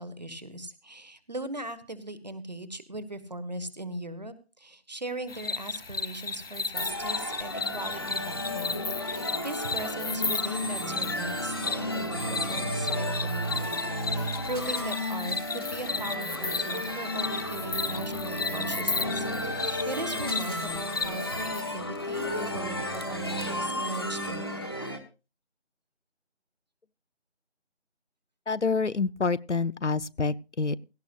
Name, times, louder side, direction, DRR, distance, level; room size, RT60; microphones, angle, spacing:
voice 1, 0.0-24.7, right 1 dB, 40° right, 14 dB, 1.6 m, -39 dB
sound 1, 5.3-21.6, left 4 dB, 55° left, 0.6 m, -35 dB
sound 2, 6.7-25.0, left 1 dB, 20° left, 1.2 m, -33 dB
voice 2, 28.5-30.8, left 4 dB, 85° left, 17 dB, 0.8 m, -27 dB
17.5 x 16.5 x 2.5 m, 0.30 s
figure-of-eight pair, 165°, 34 cm